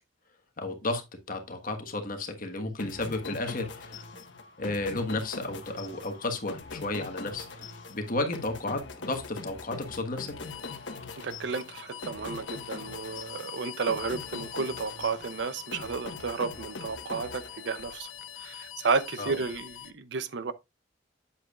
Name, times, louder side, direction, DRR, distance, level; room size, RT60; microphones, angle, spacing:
voice 1, 0.6-1.0 1.3-4.0 4.6-10.4 19.2-19.4, left 2 dB, 45° left, 1.3 m, -33 dB
sound 1, 2.8-18.1, left 3 dB, 60° left, 1.3 m, -42 dB
sound 2, 7.4-19.9, left 11 dB, 85° left, 0.7 m, -46 dB
voice 2, 11.2-18.1 18.4-20.5, right 4 dB, 60° right, 0.6 m, -32 dB
8.5 x 7.7 x 2.4 m
head